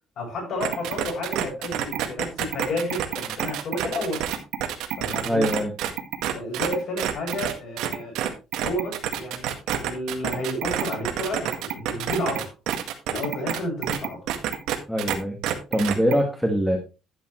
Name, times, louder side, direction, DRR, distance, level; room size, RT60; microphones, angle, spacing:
voice 1, 0.2-4.3 5.0-5.4 6.3-8.2 8.6-9.6 9.8-12.5 13.1-14.3, left 1 dB, 45° left, 6.9 m, -31 dB
sound 1, 0.6-15.2 15.4-16.1, right 11 dB, 75° right, 1.7 m, -28 dB
voice 2, 5.2-5.7 14.9-15.4 15.7-16.8, equal, ahead, 1.6 m, -23 dB
12.0 x 8.5 x 3.1 m
cardioid pair, 165°, 0 cm